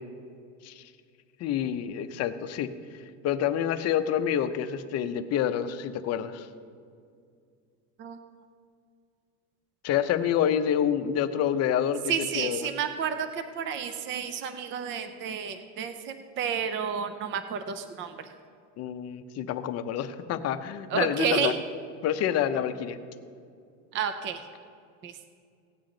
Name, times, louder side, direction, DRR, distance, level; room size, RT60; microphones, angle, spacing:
voice 1, 1.4-2.7 3.2-6.5 9.8-12.7 18.8-21.5 22.0-23.0, left 9 dB, 40° left, 9 dB, 0.6 m, -28 dB
voice 2, 12.1-18.3 20.9-21.6 23.9-24.4 25.0-25.2, right 7 dB, 30° right, 8 dB, 0.6 m, -31 dB
17.0 x 9.1 x 3.9 m, 2.3 s
cardioid pair, 155°, 38 cm